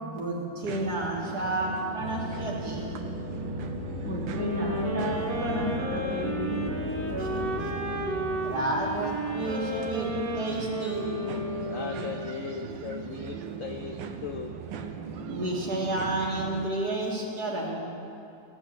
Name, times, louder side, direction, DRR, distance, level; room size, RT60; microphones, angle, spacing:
voice 1, 0.0-2.9 7.1-7.7 8.4-11.1 15.3-17.7, right 2 dB, 55° right, -2 dB, 2.4 m, -31 dB
sound 1, 0.6-16.7, right 5 dB, 75° right, 1.4 m, -39 dB
sound 2, 2.0-10.4, left 2 dB, 55° left, 1.0 m, -38 dB
voice 2, 4.0-6.7, left 1 dB, 10° left, -1 dB, 0.9 m, -33 dB
sound 3, 4.3-12.5, right 1 dB, 30° right, 1.2 m, -33 dB
voice 3, 11.7-14.6, left 6 dB, 75° left, 5 dB, 0.7 m, -38 dB
16.0 x 6.2 x 8.1 m, 2.6 s
omnidirectional pair, 2.1 m